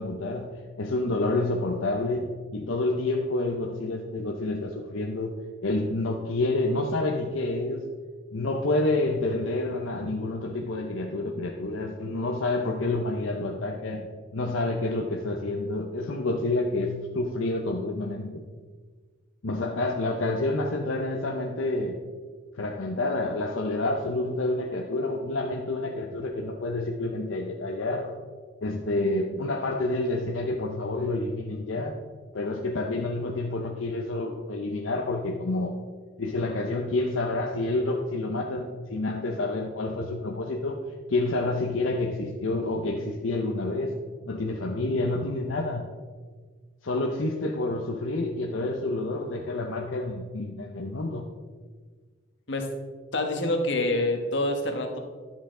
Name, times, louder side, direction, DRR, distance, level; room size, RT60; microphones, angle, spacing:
voice 1, 0.0-5.3 5.6-7.9 8.3-14.1 14.3-18.4 19.4-22.0 22.5-28.1 28.6-32.0 32.3-35.8 36.2-40.8 41.1-44.0 44.3-45.9 46.8-51.3, left 2 dB, 80° left, 1 dB, 0.8 m, -28 dB
voice 2, 53.1-55.0, left 2 dB, 60° left, 3 dB, 1.3 m, -26 dB
11.0 x 7.5 x 3.8 m, 1.5 s
head